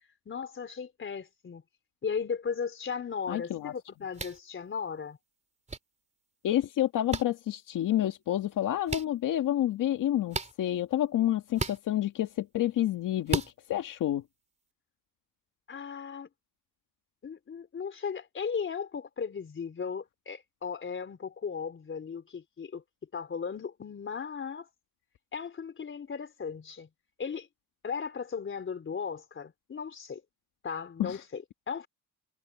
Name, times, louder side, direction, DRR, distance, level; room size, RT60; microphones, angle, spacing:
voice 1, 0.3-1.6 2.0-5.2 15.7-16.3 17.2-22.8 23.1-24.7 25.3-26.9 27.2-27.5 27.8-30.2 30.6-31.9, left 6 dB, 35° left, 3.8 m, -36 dB
voice 2, 3.3-3.7 6.4-13.4 13.7-14.2 31.0-31.2, left 12 dB, 75° left, 1.8 m, -29 dB
sound 1, 4.1-4.4 5.7-5.8 7.1-7.2 8.9-9.0 10.3-10.5 11.5-11.8 13.3-13.5, right 3 dB, 20° right, 3.0 m, -32 dB
cardioid pair, 115°, 33 cm